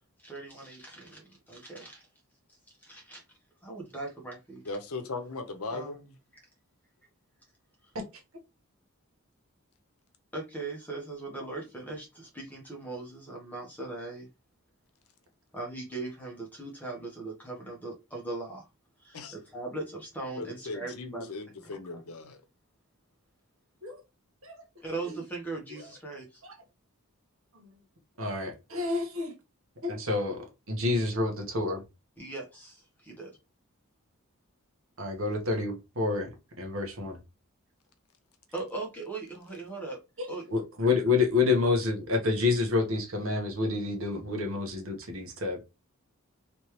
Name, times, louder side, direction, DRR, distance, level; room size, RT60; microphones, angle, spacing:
voice 1, 0.2-2.1 2.8-3.2 3.6-4.6 5.7-6.4 10.3-14.3 15.5-18.7 19.0-21.3 21.6-22.0 24.8-26.4 32.2-33.3 38.5-40.0 40.3-40.4, right 3 dB, 10° left, 1.0 m, -39 dB
voice 2, 4.7-6.0 19.1-19.3 20.3-22.4, left 3 dB, 80° left, 0.7 m, -38 dB
voice 3, 28.2-29.3 29.8-31.8 35.0-36.3 36.6-37.2 40.2-45.6, left 3 dB, 70° right, 1.2 m, -28 dB
3.3 x 3.2 x 3.0 m
head